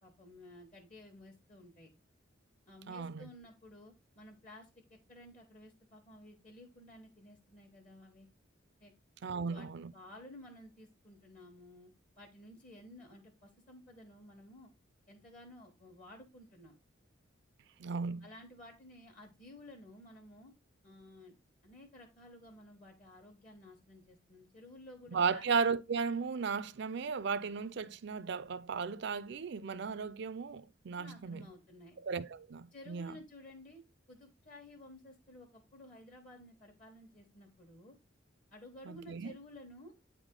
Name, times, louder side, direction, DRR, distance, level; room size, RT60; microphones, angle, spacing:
voice 1, 0.0-1.9 2.7-8.3 8.8-8.9 9.4-9.7 9.9-11.9 12.2-14.7 15.1-16.7 18.2-20.5 20.8-21.4 21.6-25.5 31.0-32.0 32.7-33.8 34.1-37.9 38.5-39.9, left 1 dB, 40° left, 1.3 m, -54 dB
voice 2, 2.9-3.3 9.2-9.9 17.8-18.2 25.1-31.5 32.0-33.1 38.9-39.3, right 5 dB, 65° right, 0.5 m, -35 dB
8.6 x 3.6 x 3.6 m
head